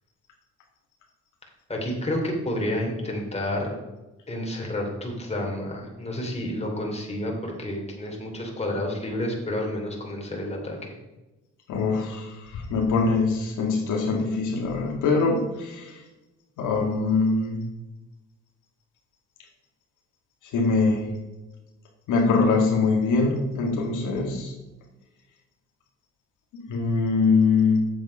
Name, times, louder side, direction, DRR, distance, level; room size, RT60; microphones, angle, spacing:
voice 1, 1.7-3.8 4.3-11.0, left 1 dB, 20° left, 0 dB, 2.9 m, -30 dB
voice 2, 11.7-16.0 16.6-17.6 20.5-21.1 22.1-24.5 26.5-27.9, left 4 dB, 85° left, 0 dB, 1.9 m, -23 dB
7.7 x 7.5 x 5.4 m, 1.1 s
cardioid pair, 90°, 30 cm